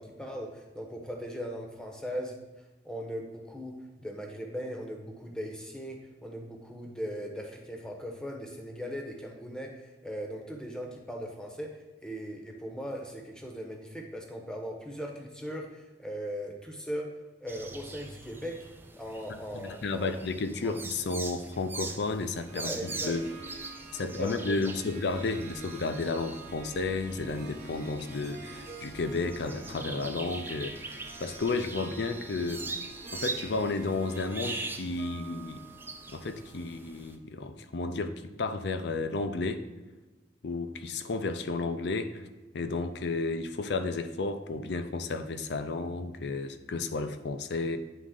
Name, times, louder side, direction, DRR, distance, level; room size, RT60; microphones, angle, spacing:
voice 1, 0.0-2.4 2.8-11.7 12.0-17.1 17.4-18.6 19.0-20.2 20.6-20.8 22.5-23.1 23.5-23.6 24.0-24.6, equal, 5° left, 1 dB, 0.9 m, -39 dB
sound 1, 17.5-37.2, right 3 dB, 10° right, 0.4 m, -42 dB
voice 2, 19.5-23.3 23.9-32.6 33.1-35.6 36.1-39.6 40.4-42.2 42.5-47.8, left 3 dB, 65° left, 9 dB, 0.5 m, -32 dB
Harp, 22.5-37.0, right 3 dB, 40° right, 0.8 m, -48 dB
9.0 x 3.7 x 3.8 m, 1.2 s
head